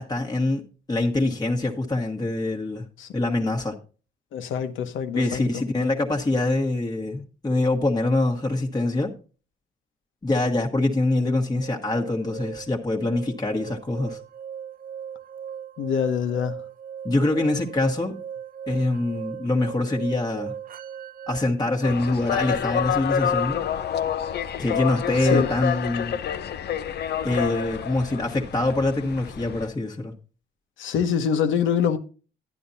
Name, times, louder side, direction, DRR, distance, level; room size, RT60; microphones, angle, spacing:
voice 1, 0.0-2.8 3.1-3.7 5.1-9.1 10.2-14.2 17.0-18.2 18.7-20.5 21.3-23.6 24.6-26.2 27.2-30.1, left 2 dB, 20° left, 1.3 m, -24 dB
voice 2, 4.3-5.5 15.8-16.6 25.2-25.5 30.8-32.0, left 7 dB, 80° left, 1.1 m, -25 dB
sound 1, 11.6-21.4, right 8 dB, 45° right, 0.5 m, -38 dB
sound 2, 21.8-29.7, left 8 dB, 55° left, 0.6 m, -28 dB
11.0 x 10.0 x 2.7 m
cardioid pair, 90°, 20 cm